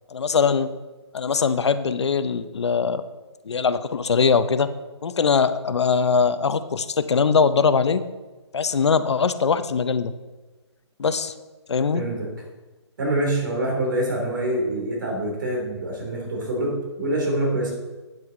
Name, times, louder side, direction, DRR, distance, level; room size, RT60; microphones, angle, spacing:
voice 1, 0.1-0.7 1.1-3.0 3.5-4.7 5.0-8.0 8.5-10.1 11.0-11.3 11.7-12.0, left 5 dB, 70° left, 13 dB, 0.6 m, -21 dB
voice 2, 11.9-12.3 13.0-17.7, right 1 dB, 45° right, -1 dB, 2.8 m, -25 dB
9.0 x 7.7 x 3.8 m, 1.2 s
hypercardioid pair, 170°, 15 cm